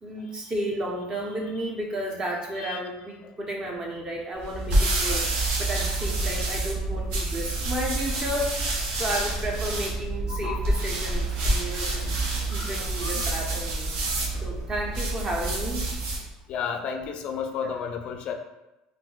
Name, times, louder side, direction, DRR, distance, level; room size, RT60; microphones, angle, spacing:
voice 1, 0.0-8.6 8.9-12.1 12.5-13.9 14.4-16.0 17.6-17.8, right 1 dB, 30° right, -1 dB, 0.8 m, -32 dB
sound 1, 4.4-16.3, right 2 dB, 75° right, 0.8 m, -28 dB
voice 2, 16.5-18.3, left 7 dB, 55° left, 5 dB, 0.3 m, -32 dB
3.7 x 2.5 x 2.3 m, 0.96 s
supercardioid pair, 100°, 2 cm